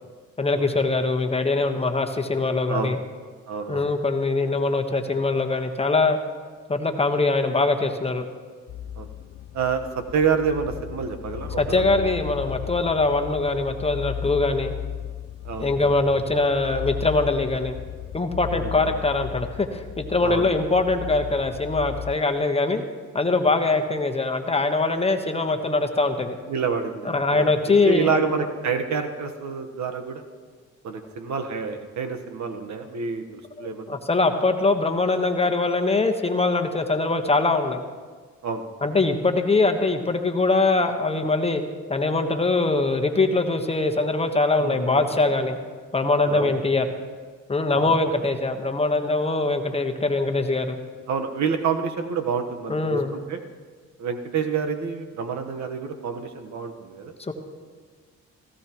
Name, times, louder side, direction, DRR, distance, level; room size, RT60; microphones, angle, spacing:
voice 1, 0.4-3.0 3.7-6.2 6.7-8.2 11.6-14.7 15.6-17.7 18.1-22.8 23.1-26.4 27.0-28.2 33.6-37.8 38.8-41.6 41.9-45.6 45.9-46.9 47.5-50.8 52.7-53.1 57.2-57.3, left 3 dB, 20° left, 5 dB, 1.2 m, -22 dB
voice 2, 3.5-3.9 9.0-9.1 9.5-12.2 15.4-15.9 18.5-18.9 20.2-20.5 23.4-23.5 26.5-27.5 27.8-30.2 30.8-34.0 38.4-38.9 44.6-45.2 46.2-46.5 47.7-47.9 51.1-53.4 54.0-57.1, right 6 dB, 70° right, 6 dB, 1.2 m, -28 dB
sound 1, 8.7-22.1, left 10 dB, 45° left, 0.4 m, -36 dB
17.5 x 15.5 x 3.0 m, 1.5 s
cardioid pair, 90°, 30 cm